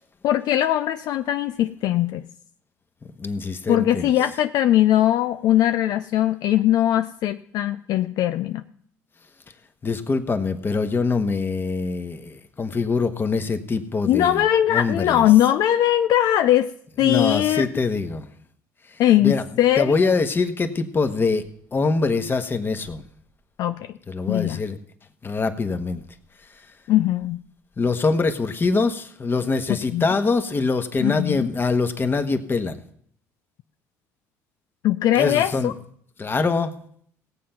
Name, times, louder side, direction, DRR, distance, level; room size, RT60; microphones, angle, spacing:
voice 1, 0.2-2.2 3.7-8.6 14.0-16.7 17.0-17.7 19.0-20.1 23.6-23.8 24.3-24.6 26.9-27.4 29.7-30.1 31.0-31.4 34.8-35.7, left 12 dB, 65° left, 9 dB, 0.5 m, -20 dB
voice 2, 3.2-4.1 9.8-14.4 14.7-15.2 17.0-18.3 18.9-19.5 19.8-23.0 24.1-24.8 25.2-26.0 26.5-26.6 27.8-32.8 35.1-35.7 36.2-36.7, left 4 dB, 30° left, 8 dB, 1.4 m, -24 dB
17.0 x 7.7 x 5.8 m, 0.64 s
supercardioid pair, 80°, 7 cm